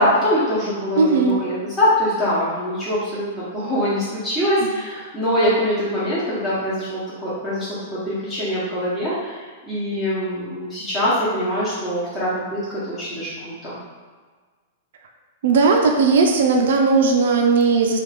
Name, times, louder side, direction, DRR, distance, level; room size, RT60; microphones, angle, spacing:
voice 1, 0.0-13.8, equal, 10° left, -12 dB, 0.9 m, -23 dB
voice 2, 1.0-1.4 4.6-4.7 15.4-18.0, right 4 dB, 70° right, 2 dB, 0.4 m, -17 dB
3.2 x 2.4 x 3.4 m, 1.5 s
hypercardioid pair, 150°, 0 cm